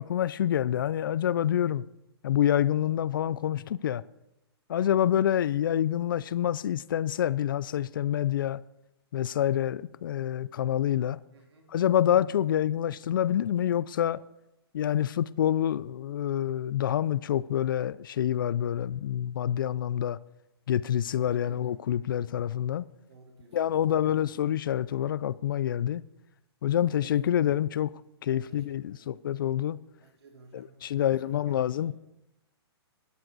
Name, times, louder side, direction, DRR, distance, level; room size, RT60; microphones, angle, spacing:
voice 1, 0.0-1.8 2.2-4.0 4.7-8.6 9.1-11.2 11.7-14.2 14.7-20.2 20.7-22.8 23.5-26.0 26.6-27.9 28.2-29.8 30.5-31.9, left 10 dB, 50° left, 0.4 m, -27 dB
voice 2, 11.3-11.7 12.1-12.4 21.2-21.8 23.1-24.4 26.7-27.1 28.3-29.1 30.0-31.9, right 3 dB, 75° right, 3.7 m, -53 dB
14.5 x 12.5 x 3.9 m
hypercardioid pair, 170°, 14 cm